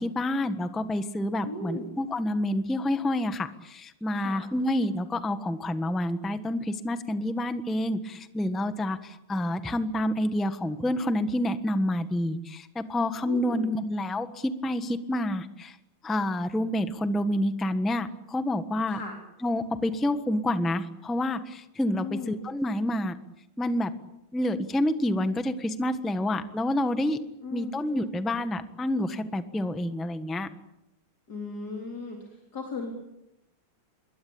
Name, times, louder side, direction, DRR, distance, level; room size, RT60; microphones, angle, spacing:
voice 1, 0.0-15.7 16.0-19.0 19.4-23.2 23.6-23.9 24.3-27.2 27.5-30.5, left 1 dB, ahead, 10 dB, 1.0 m, -28 dB
voice 2, 1.4-1.9 4.1-4.4 13.3-13.6 18.9-19.2 22.0-22.4 27.4-27.8 31.3-32.9, left 3 dB, 45° left, 1 dB, 4.3 m, -37 dB
26.0 x 23.0 x 8.7 m, 0.86 s
omnidirectional pair, 2.3 m